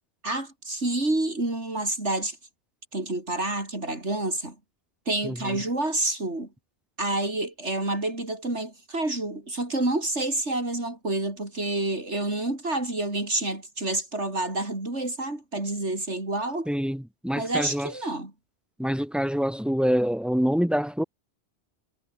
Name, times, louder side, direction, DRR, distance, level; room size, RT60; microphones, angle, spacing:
voice 1, 0.2-2.4 2.9-4.6 5.1-6.5 7.0-16.7 17.3-18.3, right 2 dB, 90° right, 5.7 m, -28 dB
voice 2, 5.2-5.6 16.7-17.9 18.8-21.0, equal, ahead, 1.1 m, -26 dB
omnidirectional pair, 1.1 m